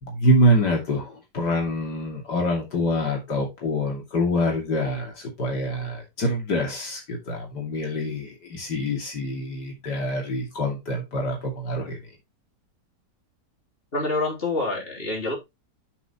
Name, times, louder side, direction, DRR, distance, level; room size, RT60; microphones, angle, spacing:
voice 1, 0.0-12.0, equal, 75° left, 3.2 m, -25 dB
voice 2, 13.9-15.3, left 2 dB, 35° left, 3.7 m, -26 dB
8.2 x 7.8 x 3.0 m
omnidirectional pair, 1.8 m